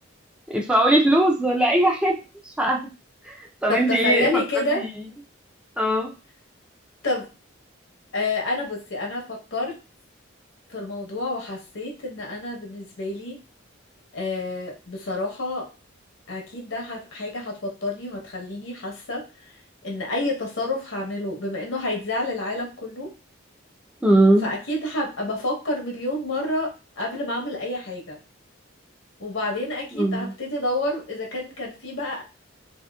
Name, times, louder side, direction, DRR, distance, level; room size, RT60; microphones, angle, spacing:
voice 1, 0.5-2.1 2.4-2.8 3.3-5.1 5.8-6.1 24.0-24.5 29.9-30.3, right 1 dB, 5° right, -1 dB, 0.4 m, -20 dB
voice 2, 3.7-4.9 7.0-7.3 8.1-9.8 10.7-13.4 14.1-15.7 16.3-19.3 19.8-23.1 24.4-28.2 29.2-32.2, left 2 dB, 80° left, 1 dB, 0.8 m, -29 dB
2.9 x 2.4 x 2.2 m, 0.30 s
head